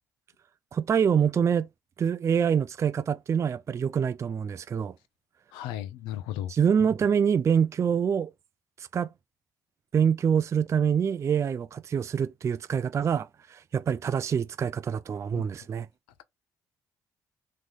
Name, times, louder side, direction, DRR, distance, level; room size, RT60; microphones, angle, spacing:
voice 1, 0.7-1.7 2.0-4.9 6.5-8.3 8.8-9.1 9.9-15.9, right 7 dB, 40° right, 0.3 m, -25 dB
voice 2, 5.5-6.5 15.3-15.5, left 12 dB, 80° left, 0.7 m, -35 dB
3.8 x 3.1 x 3.3 m
hypercardioid pair, 55°, 8 cm